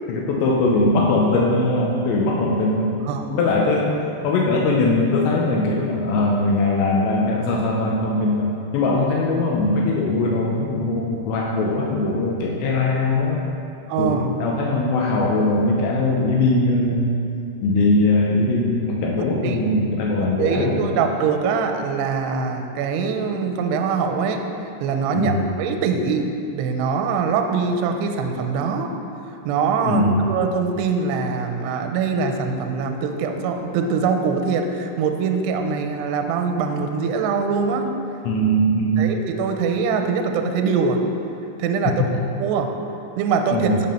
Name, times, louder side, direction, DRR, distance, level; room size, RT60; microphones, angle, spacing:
voice 1, 0.1-3.0 3.3-13.5 14.0-17.2 17.6-21.0 25.2-25.5 29.9-30.2 38.2-39.1 43.5-43.8, left 2 dB, 80° left, -2 dB, 3.0 m, -20 dB
voice 2, 13.9-14.3 19.4-19.8 20.2-24.4 24.8-28.9 29.4-37.9 39.0-41.0 41.6-41.9 42.3-42.7 43.2-43.7, right 5 dB, 80° right, 5 dB, 2.7 m, -23 dB
16.5 x 5.7 x 5.7 m, 2.7 s
omnidirectional pair, 5.3 m